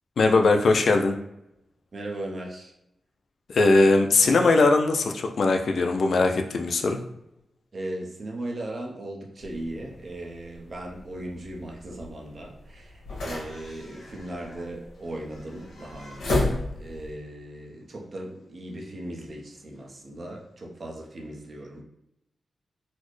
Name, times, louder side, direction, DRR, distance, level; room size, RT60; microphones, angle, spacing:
voice 1, 0.2-1.2 3.5-7.0, left 3 dB, 55° left, 4 dB, 0.3 m, -20 dB
voice 2, 1.9-2.7 7.7-21.8, right 1 dB, 40° right, -1 dB, 0.6 m, -38 dB
sound 1, 9.4-17.1, left 2 dB, 75° left, 1.2 m, -34 dB
4.0 x 2.0 x 3.1 m, 0.83 s
wide cardioid pair, 170°, 0 cm